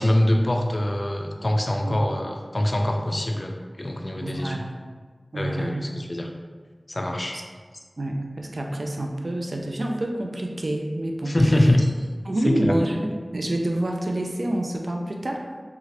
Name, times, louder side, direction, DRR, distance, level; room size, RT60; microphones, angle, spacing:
voice 1, 0.0-4.6 5.3-6.3 6.9-7.4 11.3-11.9 12.4-12.7, left 1 dB, 45° left, 2 dB, 0.3 m, -23 dB
voice 2, 4.2-4.8 5.3-5.9 8.0-11.4 12.2-15.5, right 1 dB, 70° right, 1 dB, 0.3 m, -27 dB
3.0 x 2.4 x 2.9 m, 1.5 s
wide cardioid pair, 50°, 0 cm